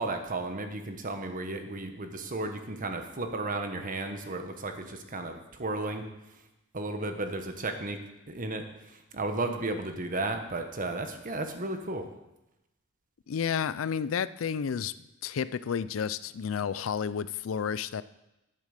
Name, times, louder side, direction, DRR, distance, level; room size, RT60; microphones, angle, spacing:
voice 1, 0.0-6.1 6.7-8.0 8.3-8.6 9.1-12.1, right 2 dB, 40° right, 6 dB, 1.2 m, -34 dB
voice 2, 13.3-14.9 15.2-18.0, left 7 dB, 85° left, 17 dB, 0.4 m, -31 dB
10.5 x 7.5 x 6.6 m, 0.94 s
head